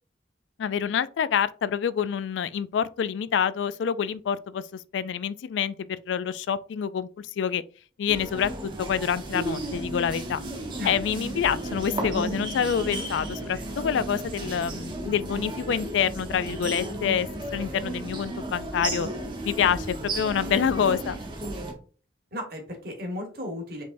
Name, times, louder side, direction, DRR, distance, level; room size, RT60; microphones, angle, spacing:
voice 1, 0.6-5.7 6.1-7.6 8.0-10.4 10.8-19.1 19.4-21.2, left 7 dB, 75° left, 0.3 m, -27 dB
sound 1, 8.1-21.7, right 2 dB, 25° right, 0.8 m, -33 dB
voice 2, 22.3-23.8, left 1 dB, 55° right, 1.3 m, -35 dB
5.2 x 3.3 x 2.6 m
head